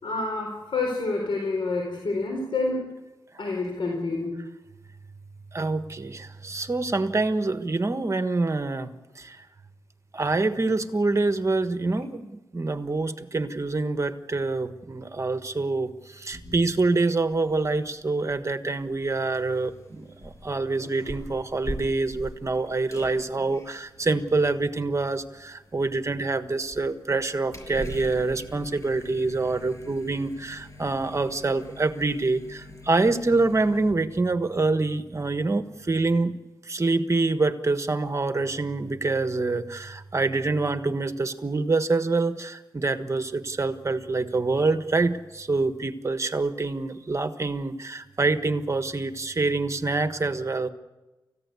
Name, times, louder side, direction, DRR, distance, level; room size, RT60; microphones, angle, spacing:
voice 1, 0.0-2.9 3.4-4.4, left 3 dB, 85° left, 1 dB, 4.4 m, -28 dB
voice 2, 5.5-9.4 10.1-20.1 20.4-36.3 36.7-50.7, right 3 dB, 35° right, 9 dB, 1.3 m, -26 dB
sound 1, 16.3-17.1 17.3-33.9, equal, 35° left, 5.8 m, -44 dB
29.5 x 15.0 x 8.3 m, 1.1 s
wide cardioid pair, 115°, 8 cm